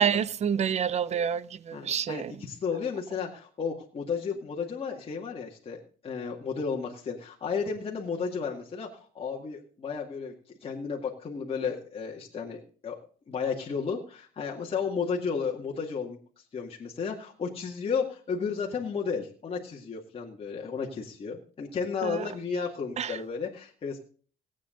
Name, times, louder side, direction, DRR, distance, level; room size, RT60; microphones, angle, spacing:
voice 1, 0.0-2.4 22.0-22.3 23.0-23.2, right 8 dB, 40° right, 0.7 m, -28 dB
voice 2, 1.7-10.3 10.6-13.0 13.3-16.2 16.5-24.0, left 5 dB, 35° left, 2.1 m, -33 dB
17.5 x 8.6 x 3.8 m
cardioid pair, 110°, 17 cm